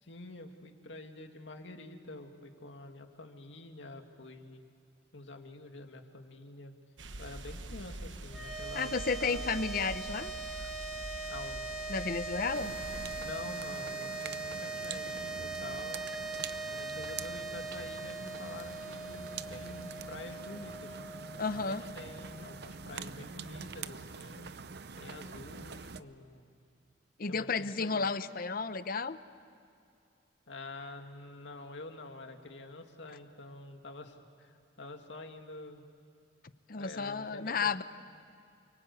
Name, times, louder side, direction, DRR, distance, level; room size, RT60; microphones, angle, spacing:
voice 1, 0.0-4.7 5.1-6.7 7.2-8.9 9.2-9.5 11.3-11.8 13.2-16.0 16.8-21.0 21.5-24.5 25.0-26.6 27.3-28.1 30.5-35.8 36.8-37.7, left 2 dB, 75° left, 4 dB, 2.3 m, -47 dB
sound 1, 7.0-13.2, right 2 dB, 80° right, 1.3 m, -45 dB
sound 2, 8.3-22.7, right 3 dB, ahead, 2.3 m, -41 dB
voice 2, 8.7-10.3 11.9-12.7 21.4-21.8 27.2-29.2 36.7-37.8, left 4 dB, 50° left, 13 dB, 0.8 m, -32 dB
sound 3, 12.5-26.0, right 5 dB, 60° right, 0.7 m, -45 dB
29.5 x 24.0 x 8.3 m, 2.5 s
head